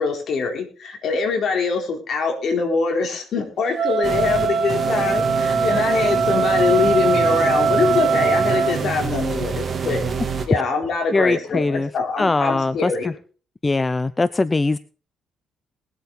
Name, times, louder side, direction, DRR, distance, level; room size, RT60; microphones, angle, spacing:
voice 1, 0.0-10.0 10.5-13.1, left 5 dB, 60° left, 3 dB, 4.2 m, -23 dB
Wind instrument woodwind instrument, 3.7-8.8, right 5 dB, 60° right, 2.7 m, -21 dB
sound 1, 4.0-10.5, right 5 dB, 40° right, 2.7 m, -27 dB
voice 2, 11.1-11.9 12.2-13.1 13.6-14.8, left 3 dB, 20° left, 16 dB, 0.5 m, -21 dB
21.0 x 8.1 x 4.2 m, 0.40 s
cardioid pair, 90°, 0 cm